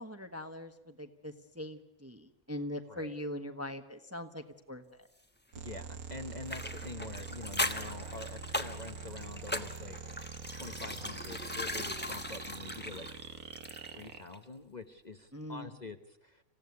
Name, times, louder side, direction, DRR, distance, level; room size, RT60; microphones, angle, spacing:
voice 1, 0.0-5.1 15.3-15.7, left 1 dB, 10° right, 7 dB, 1.0 m, -42 dB
sound 1, 5.5-14.2, right 6 dB, 90° right, 1.7 m, -45 dB
voice 2, 5.6-10.0 10.6-13.1 13.9-16.4, left 3 dB, 30° left, 6 dB, 1.1 m, -46 dB
sound 2, 6.5-14.1 14.3-14.4, left 1 dB, 10° left, 1.1 m, -39 dB
26.5 x 16.0 x 9.6 m, 0.93 s
omnidirectional pair, 1.5 m